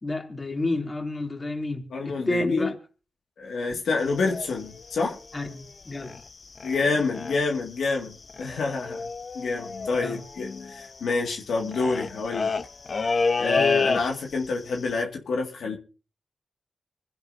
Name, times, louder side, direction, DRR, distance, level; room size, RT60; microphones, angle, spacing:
voice 1, 0.0-2.7 3.7-3.8 5.3-6.2 10.0-10.2 13.5-13.9, left 2 dB, 35° left, 3.1 m, -30 dB
voice 2, 1.9-2.7 3.4-5.2 6.6-9.0 9.3-12.5 13.4-15.8, left 4 dB, 80° left, 2.1 m, -27 dB
sound 1, 4.0-6.3 6.6-6.8 7.1-7.6 7.9-14.5 14.7-15.0, left 4 dB, 50° left, 0.7 m, -30 dB
25.0 x 10.5 x 2.7 m
cardioid pair, 55°, 0 cm